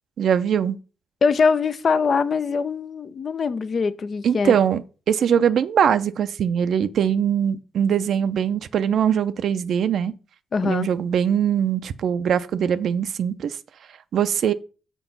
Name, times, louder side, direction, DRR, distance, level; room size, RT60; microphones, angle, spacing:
voice 1, 0.2-0.8 4.2-4.8 5.1-10.1 10.6-13.6 14.1-14.5, right 8 dB, 70° right, 0.5 m, -21 dB
voice 2, 1.2-4.5 10.5-10.9, left 5 dB, 55° left, 0.6 m, -22 dB
6.0 x 4.5 x 5.3 m
supercardioid pair, 55°, 0 cm